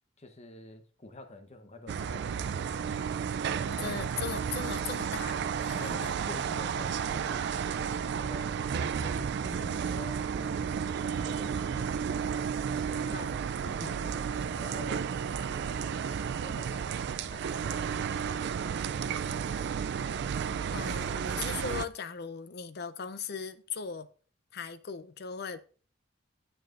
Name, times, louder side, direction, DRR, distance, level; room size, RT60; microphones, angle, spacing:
voice 1, 0.2-3.4 5.8-7.5 8.0-8.6 9.0-12.2 12.8-13.2 13.6-15.1 15.5-18.7, left 2 dB, 35° left, 0.9 m, -48 dB
sound 1, 1.9-21.9, right 7 dB, 60° right, 0.3 m, -32 dB
voice 2, 3.7-6.1 13.1-13.4 20.7-24.1 24.5-25.6, left 6 dB, 55° left, 0.6 m, -38 dB
9.2 x 8.8 x 2.5 m
head